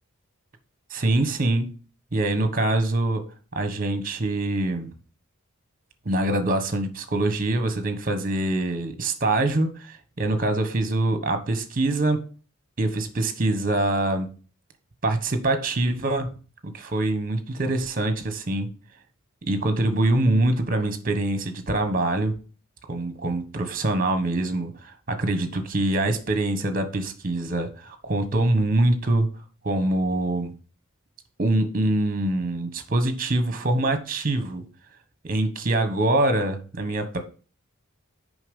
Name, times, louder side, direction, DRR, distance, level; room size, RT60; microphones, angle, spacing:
voice 1, 0.9-1.7 2.1-3.2 3.5-4.9 6.0-12.2 12.8-14.3 15.0-16.4 16.6-18.7 19.4-22.4 22.9-29.3 29.6-30.5 31.4-34.6 35.2-37.2, right 2 dB, 40° right, 1.2 m, -24 dB
7.0 x 5.4 x 5.4 m
head